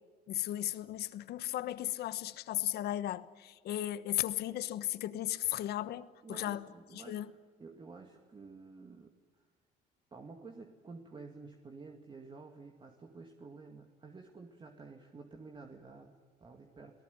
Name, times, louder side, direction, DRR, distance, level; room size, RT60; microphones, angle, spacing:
voice 1, 0.3-6.7 6.9-7.3, left 13 dB, 70° left, 1.2 m, -36 dB
voice 2, 6.2-7.2 7.6-9.1 10.1-17.0, right 4 dB, 30° right, 2.3 m, -51 dB
29.0 x 18.0 x 9.5 m
cardioid pair, 110°, 17 cm